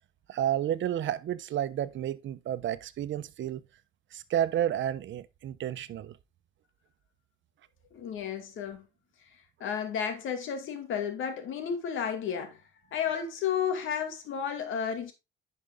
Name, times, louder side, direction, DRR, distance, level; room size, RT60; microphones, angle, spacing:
voice 1, 0.3-3.6 4.1-6.2, right 11 dB, 70° right, 1.0 m, -31 dB
voice 2, 7.9-8.9 9.6-12.6 12.9-15.1, left 7 dB, 80° left, 2.4 m, -32 dB
10.5 x 5.4 x 3.7 m
cardioid pair, 90°, 20 cm